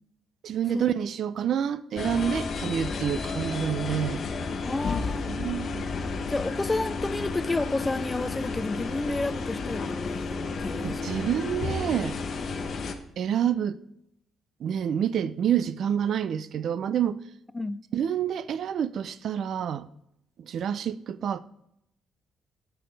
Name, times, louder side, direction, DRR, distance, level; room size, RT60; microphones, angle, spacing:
voice 1, 0.4-4.2 5.3-5.9 10.8-12.2 13.2-13.8 14.6-17.2 17.9-19.9 20.4-21.4, right 9 dB, 65° right, 0.4 m, -28 dB
sound 1, 2.0-12.9, left 4 dB, 55° left, 0.9 m, -32 dB
voice 2, 4.7-5.3 6.3-11.0 17.5-17.8, left 2 dB, 15° left, 0.4 m, -30 dB
9.9 x 6.8 x 3.3 m
cardioid pair, 90°, 0 cm